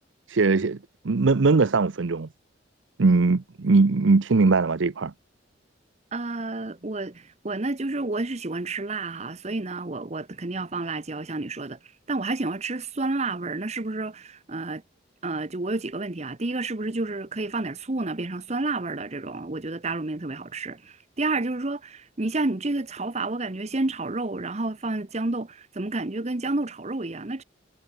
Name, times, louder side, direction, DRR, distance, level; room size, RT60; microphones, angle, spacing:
voice 1, 0.3-0.8 1.0-2.3 3.0-5.1, right 3 dB, 85° right, 0.7 m, -20 dB
voice 2, 6.1-11.8 12.1-14.8 15.2-27.4, right 2 dB, 35° right, 1.0 m, -30 dB
head